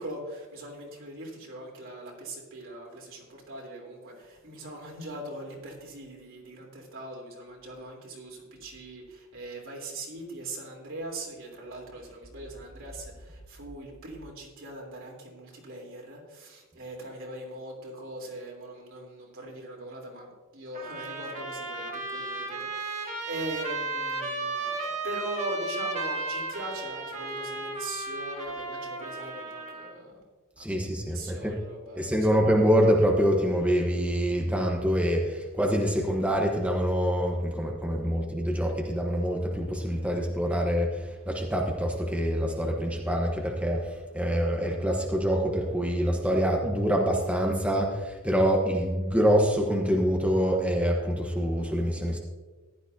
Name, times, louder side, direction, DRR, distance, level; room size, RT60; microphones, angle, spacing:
voice 1, 0.0-30.2 30.6-32.3, right 1 dB, 65° right, -1 dB, 3.5 m, -41 dB
Trumpet, 20.7-29.9, right 3 dB, 35° right, 1.7 m, -34 dB
voice 2, 30.6-31.5 32.0-52.2, equal, 5° right, 0 dB, 1.0 m, -25 dB
15.0 x 12.0 x 2.7 m, 1.3 s
head